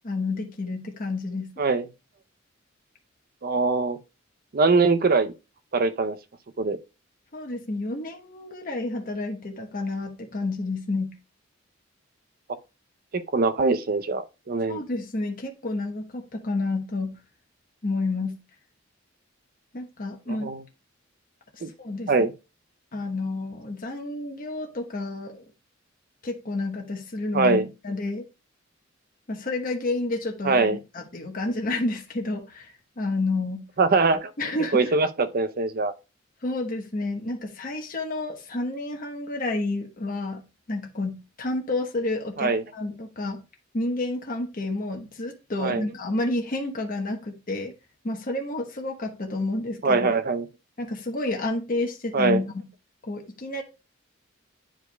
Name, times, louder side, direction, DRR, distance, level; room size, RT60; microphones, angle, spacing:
voice 1, 0.0-1.7 7.3-11.2 14.7-17.2 17.8-18.4 19.7-20.5 21.5-22.1 22.9-25.4 26.2-28.2 29.3-33.7 34.4-34.9 36.4-40.4 40.7-43.4 43.7-47.7 48.0-50.1 50.8-52.6 53.0-53.6, left 2 dB, 45° left, 1.0 m, -30 dB
voice 2, 3.4-4.0 4.5-5.3 5.7-6.2 6.6-6.8 13.1-14.8 20.4-20.6 21.6-21.7 22.1-22.3 27.3-27.6 30.4-30.8 33.8-34.3 34.7-35.9 42.4-42.6 45.6-45.8 49.8-50.5 52.1-52.4, right 3 dB, 50° right, 0.6 m, -22 dB
10.0 x 4.6 x 2.2 m
head